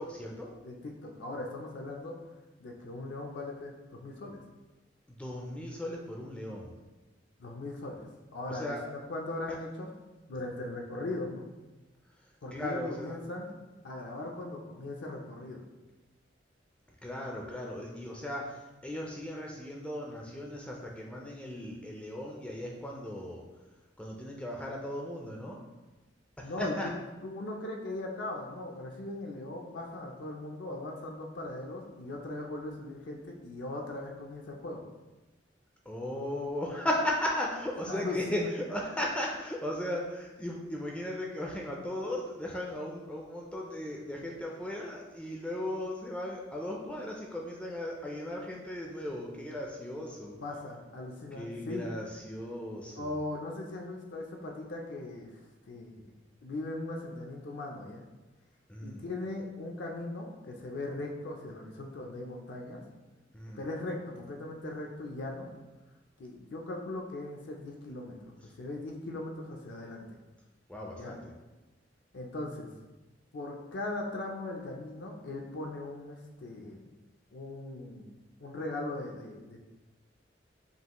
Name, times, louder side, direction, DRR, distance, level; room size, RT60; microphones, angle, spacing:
voice 1, 0.0-0.5 5.1-6.7 8.5-8.8 12.2-13.2 17.0-23.4 24.0-25.6 26.4-26.9 35.9-50.4 51.3-53.2 58.7-59.0 63.3-63.6 70.7-71.2, left 1 dB, 5° left, -1 dB, 0.4 m, -36 dB
voice 2, 0.6-2.2 2.6-4.4 7.4-9.9 10.3-11.5 12.4-13.5 13.8-15.6 26.4-26.9 27.2-34.8 37.9-38.5 50.4-51.9 53.0-55.3 55.7-56.1 56.4-58.0 58.8-62.8 63.5-65.5 66.2-68.3 68.6-70.2 70.9-71.2 72.1-72.7 73.3-76.8 77.3-78.1 78.4-79.6, left 2 dB, 65° left, 0 dB, 0.5 m, -39 dB
5.3 x 2.4 x 2.9 m, 1.1 s
head